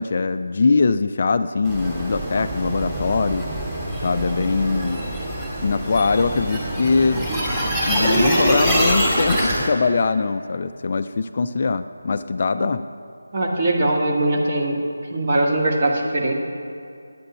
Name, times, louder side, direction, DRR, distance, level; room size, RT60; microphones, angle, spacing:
voice 1, 0.0-3.5 4.0-5.0 5.6-7.3 7.9-12.8, left 4 dB, 40° left, 10 dB, 0.3 m, -22 dB
sound 1, 1.6-9.7, right 1 dB, 5° right, 2.6 m, -24 dB
voice 2, 13.3-14.8 15.1-16.4, right 1 dB, 35° right, -1 dB, 1.9 m, -21 dB
9.8 x 8.8 x 8.9 m, 2.4 s
figure-of-eight pair, 160°, 0 cm